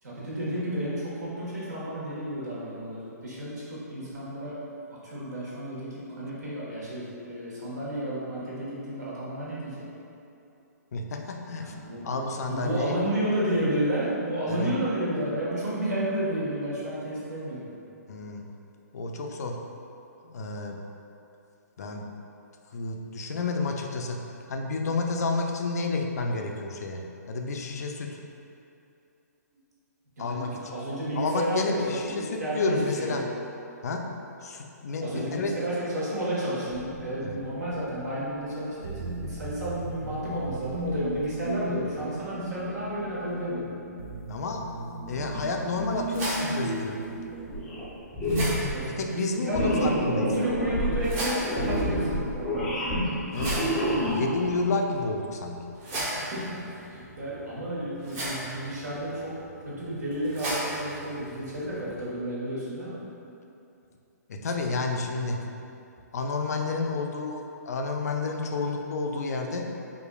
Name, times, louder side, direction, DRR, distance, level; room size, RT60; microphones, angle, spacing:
voice 1, 0.0-4.6 4.9-9.9 11.6-12.2 12.5-17.7 30.2-33.2 35.0-43.7 48.3-52.5 55.9-59.4 59.6-63.0, right 1 dB, 70° right, -7 dB, 1.3 m, -32 dB
voice 2, 10.9-11.7 12.0-13.0 14.5-14.7 18.1-18.4 18.9-19.5 20.2-20.8 21.8-22.1 22.7-24.2 24.5-27.0 27.3-28.2 30.2-30.8 31.2-33.2 33.8-34.0 34.4-35.5 37.2-37.4 44.3-44.6 45.1-47.0 48.8-50.3 53.3-53.6 54.1-55.6 64.3-65.4 66.1-69.7, left 3 dB, 65° left, 2 dB, 0.4 m, -30 dB
sound 1, 36.7-47.8, right 1 dB, 50° right, 0.4 m, -37 dB
sound 2, 45.7-62.1, right 1 dB, 25° right, 0.9 m, -38 dB
sound 3, 47.5-47.9 48.1-48.8 49.5-54.5, equal, 5° left, 0.5 m, -28 dB
4.9 x 2.5 x 2.3 m, 2.7 s
hypercardioid pair, 145°, 9 cm